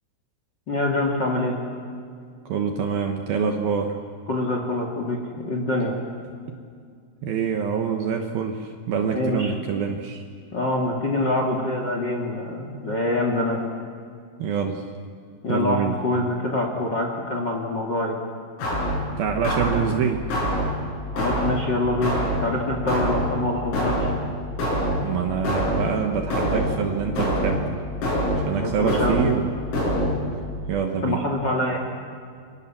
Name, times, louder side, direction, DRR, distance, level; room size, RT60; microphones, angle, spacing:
voice 1, 0.7-1.5 4.3-5.2 5.4-5.9 9.1-9.6 10.5-13.6 15.4-18.2 21.1-24.1 28.5-29.2 31.0-31.8, left 2 dB, 45° left, 2 dB, 1.4 m, -25 dB
voice 2, 2.5-3.9 7.2-10.2 14.4-14.8 15.5-16.0 19.2-20.2 25.0-27.7 28.5-29.6 30.7-31.2, right 7 dB, 75° right, 4 dB, 2.2 m, -25 dB
sound 1, 18.6-30.5, equal, 85° left, 10.5 m, -26 dB
28.5 x 24.0 x 7.3 m, 2.2 s
omnidirectional pair, 5.9 m